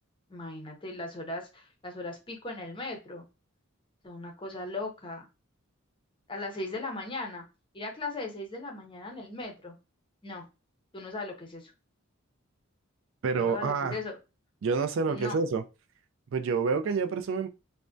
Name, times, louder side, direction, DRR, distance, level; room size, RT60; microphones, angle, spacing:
voice 1, 0.3-3.2 4.0-5.2 6.3-7.4 7.7-9.7 10.2-10.5 10.9-11.7 13.3-14.2 15.1-15.4, left 2 dB, 25° left, 0.6 m, -38 dB
voice 2, 13.2-14.0 14.6-15.6 16.3-17.5, right 5 dB, 60° right, 0.3 m, -28 dB
3.3 x 2.1 x 2.5 m
head